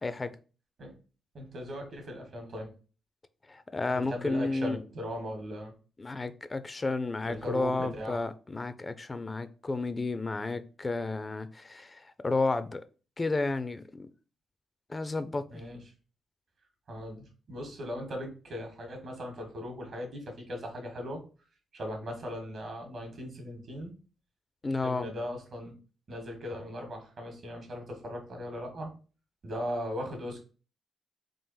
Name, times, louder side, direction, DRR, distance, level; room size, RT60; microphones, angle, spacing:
voice 1, 0.0-0.3 3.5-4.8 6.0-12.8 13.2-14.1 14.9-15.6 24.6-25.1, left 3 dB, 30° left, 0.5 m, -32 dB
voice 2, 1.3-2.7 3.9-5.7 7.2-8.2 15.5-15.8 16.9-21.2 21.7-23.9 24.8-25.7 26.1-28.9 29.4-30.4, equal, 60° right, 1.7 m, -38 dB
3.7 x 2.5 x 4.1 m
cardioid pair, 60°, 0 cm